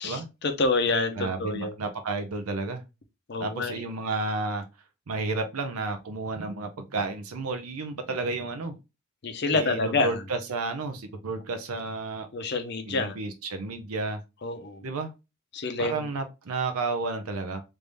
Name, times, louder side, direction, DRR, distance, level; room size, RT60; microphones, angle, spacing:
voice 1, 0.0-1.7 3.3-3.8 9.2-10.2 12.3-13.2 14.4-14.8 15.5-16.1, left 3 dB, 50° left, 0.6 m, -27 dB
voice 2, 1.2-2.8 3.4-4.6 5.1-8.8 9.5-12.3 12.9-14.2 14.8-15.1 15.8-17.6, right 3 dB, 75° right, 0.6 m, -31 dB
3.3 x 2.6 x 3.3 m
head